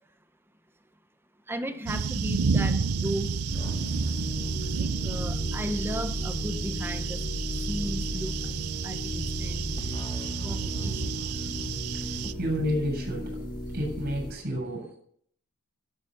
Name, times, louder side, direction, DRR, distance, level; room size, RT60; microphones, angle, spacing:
voice 1, 1.5-3.4 4.8-7.2 7.7-8.3 8.8-9.7 10.4-11.2 12.2-12.3, right 1 dB, 10° right, 8 dB, 1.1 m, -35 dB
sound 1, 1.9-12.3, right 5 dB, 85° right, 0.6 m, -31 dB
sound 2, 3.5-14.3, equal, 20° left, 2.1 m, -34 dB
voice 2, 11.9-13.4 13.7-15.0, equal, 50° right, -1 dB, 7.9 m, -31 dB
13.0 x 11.5 x 5.5 m, 0.63 s
head